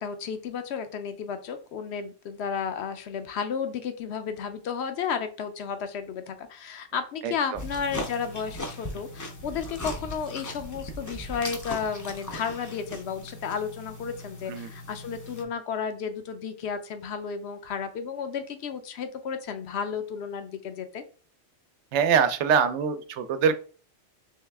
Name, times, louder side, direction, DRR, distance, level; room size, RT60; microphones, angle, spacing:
voice 1, 0.0-21.0, left 6 dB, 70° left, 9 dB, 0.8 m, -33 dB
sound 1, 7.6-15.4, left 1 dB, 25° left, 0.4 m, -38 dB
voice 2, 21.9-23.6, right 7 dB, 80° right, 10 dB, 0.9 m, -23 dB
3.5 x 3.1 x 3.4 m, 0.38 s
omnidirectional pair, 1.2 m